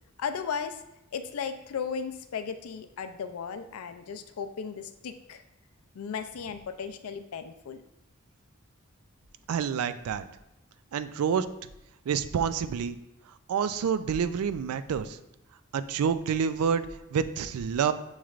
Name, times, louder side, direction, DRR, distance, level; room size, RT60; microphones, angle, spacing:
voice 1, 0.2-0.8 1.1-5.4 5.9-7.8, left 6 dB, 75° left, 10 dB, 0.4 m, -35 dB
voice 2, 9.5-10.2 10.9-11.5 12.1-13.0 13.5-15.2 15.7-17.9, right 7 dB, 85° right, 13 dB, 0.3 m, -28 dB
7.1 x 3.1 x 2.4 m, 0.87 s
head